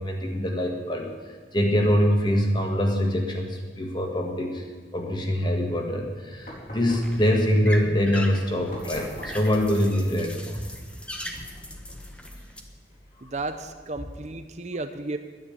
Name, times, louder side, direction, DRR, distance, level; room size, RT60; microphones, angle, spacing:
voice 1, 0.0-4.6 4.9-10.6, equal, 25° left, 2 dB, 1.9 m, -24 dB
sound 1, 6.4-13.9, equal, 50° left, 4.4 m, -46 dB
sound 2, 6.4-12.6, left 1 dB, 5° left, 1.1 m, -40 dB
voice 2, 13.2-15.2, right 2 dB, 40° right, 9 dB, 0.6 m, -33 dB
11.0 x 9.8 x 8.8 m, 1.4 s
head